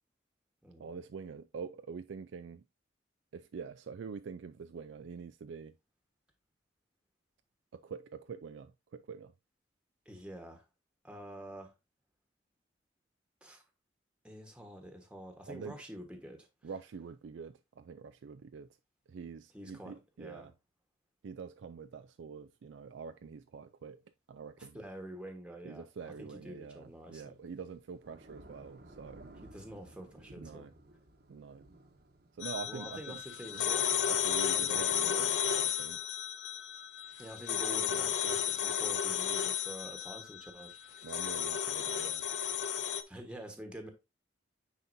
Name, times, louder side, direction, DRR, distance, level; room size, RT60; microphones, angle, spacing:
voice 1, 0.8-2.6 3.3-5.7 7.7-9.3 15.5-15.8 16.6-18.7 19.1-20.5 21.2-24.0 24.3-24.8 25.6-29.2 30.4-30.7 31.3-31.6 32.4-33.2 33.5-33.8 34.1-36.0 37.9-38.1 41.0-42.2, right 5 dB, 75° right, 0.4 m, -45 dB
voice 2, 10.0-10.6 11.0-11.7 13.4-13.6 14.2-16.5 19.5-20.5 24.6-27.4 29.4-30.7 32.7-34.3 34.5-35.7 37.2-41.1 43.1-43.9, equal, 5° right, 1.3 m, -47 dB
Thunder / Rain, 26.6-34.8, right 1 dB, 55° right, 1.1 m, -57 dB
sound 1, 32.4-43.0, left 9 dB, 70° left, 0.7 m, -33 dB
9.4 x 4.2 x 2.6 m
head